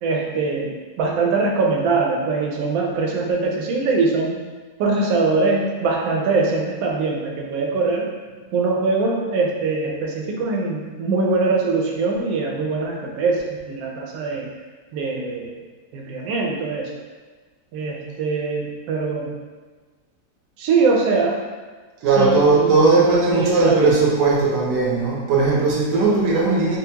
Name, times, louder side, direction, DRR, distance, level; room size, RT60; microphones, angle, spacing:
voice 1, 0.0-4.4 4.8-8.1 8.5-14.5 14.9-15.6 15.9-16.9 17.7-19.3 20.6-21.4 22.2-23.9, right 3 dB, 70° right, 0 dB, 0.9 m, -22 dB
voice 2, 22.0-26.8, right 3 dB, 90° right, -4 dB, 1.4 m, -18 dB
4.3 x 2.0 x 2.8 m, 1.4 s
omnidirectional pair, 1.8 m